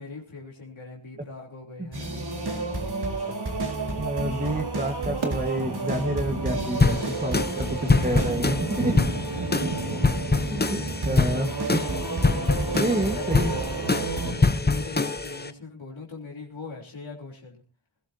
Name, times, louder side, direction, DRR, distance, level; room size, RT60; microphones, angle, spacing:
voice 1, 0.0-2.7 8.5-9.2 13.0-13.7 13.9-17.6, left 4 dB, 85° left, -1 dB, 3.6 m, -42 dB
sound 1, 1.9-14.3, right 3 dB, 55° right, 4.1 m, -31 dB
voice 2, 4.0-8.9 10.5-11.9 12.8-13.5 14.2-14.4, right 1 dB, 20° right, 4 dB, 1.7 m, -29 dB
sound 2, 5.2-14.6, right 3 dB, 80° right, 2.3 m, -36 dB
sound 3, 6.8-15.5, left 3 dB, 20° left, 0.8 m, -25 dB
20.0 x 17.5 x 2.8 m, 0.35 s
wide cardioid pair, 85°, 46 cm